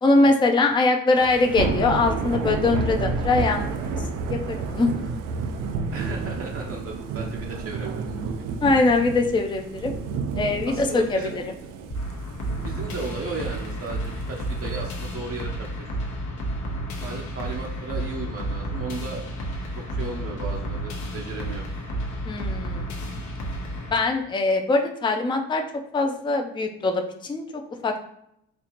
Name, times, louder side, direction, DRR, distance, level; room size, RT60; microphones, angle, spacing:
voice 1, 0.0-3.6 4.3-4.9 8.6-10.0 10.4-11.2 22.2-22.9 23.9-25.6 25.9-27.4 27.8-27.9, left 3 dB, 15° left, 5 dB, 0.4 m, -22 dB
Thunder / Rain, 1.2-15.1, right 4 dB, 90° right, 0.5 m, -31 dB
voice 2, 5.9-8.5 10.6-11.4 12.6-15.7 17.0-19.2 19.8-21.6, right 3 dB, 50° right, -1 dB, 0.6 m, -35 dB
sound 1, 11.9-23.9, right 1 dB, 75° left, 0.9 m, -31 dB
4.4 x 2.4 x 2.8 m, 0.73 s
cardioid pair, 90°, 30 cm